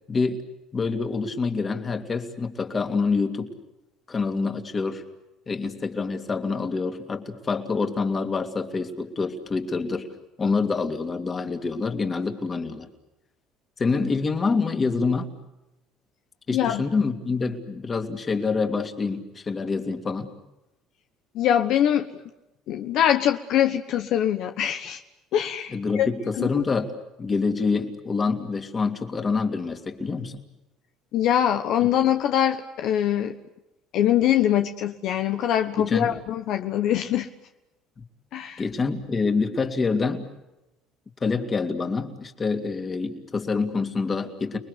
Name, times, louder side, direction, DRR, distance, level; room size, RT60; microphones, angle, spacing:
voice 1, 0.1-0.4 0.7-3.5 4.1-5.0 5.5-10.1 10.4-12.9 13.8-15.3 16.5-20.3 25.7-26.9 27.2-30.4 35.8-36.2 38.6-40.3 41.2-44.6, left 4 dB, 30° left, 5 dB, 2.9 m, -26 dB
voice 2, 16.5-16.8 21.3-22.1 22.7-25.0 25.3-26.1 26.4-26.6 31.1-33.3 33.9-37.3 38.3-38.6, left 10 dB, 65° left, 7 dB, 1.2 m, -23 dB
30.0 x 20.5 x 8.2 m, 0.96 s
cardioid pair, 105°, 0 cm